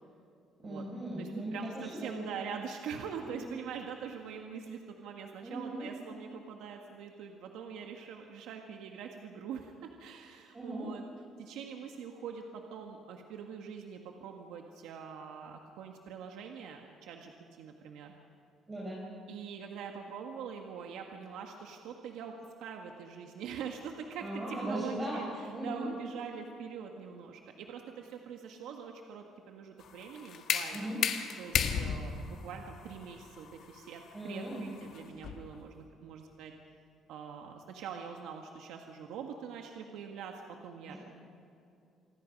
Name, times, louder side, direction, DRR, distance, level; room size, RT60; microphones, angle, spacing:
voice 1, 0.6-2.3 3.2-3.5 5.4-5.9 10.5-10.9 18.7-19.0 24.2-25.9 30.7-31.0 34.1-34.6 40.9-41.0, right 1 dB, 15° right, -5 dB, 4.6 m, -38 dB
voice 2, 1.2-11.1 11.4-17.3 17.6-18.1 19.3-30.9 31.4-36.5 37.1-41.0, right 7 dB, 90° right, 2 dB, 1.6 m, -44 dB
sound 1, 29.8-35.6, left 7 dB, 55° left, 1.6 m, -35 dB
27.5 x 20.0 x 5.4 m, 2.6 s
cardioid pair, 160°, 0 cm